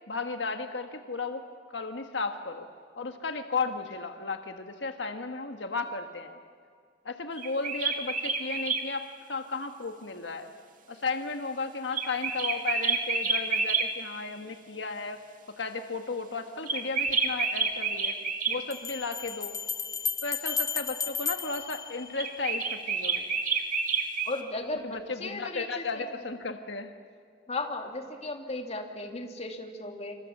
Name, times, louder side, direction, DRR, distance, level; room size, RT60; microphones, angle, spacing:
voice 1, 0.1-2.7 3.0-6.4 7.0-10.5 10.9-15.2 15.6-18.2 18.5-19.6 20.2-23.3 24.8-26.9, left 4 dB, 80° left, 6 dB, 1.4 m, -34 dB
sound 1, 7.4-8.8 11.9-13.9 16.7-18.6 22.2-24.3, right 4 dB, 50° right, 2.2 m, -28 dB
sound 2, 17.1-17.2 18.7-22.7, left 6 dB, 20° left, 0.6 m, -34 dB
voice 2, 24.3-25.8 27.5-30.2, left 2 dB, 35° left, 3 dB, 2.7 m, -35 dB
27.5 x 26.0 x 7.3 m, 2.1 s
head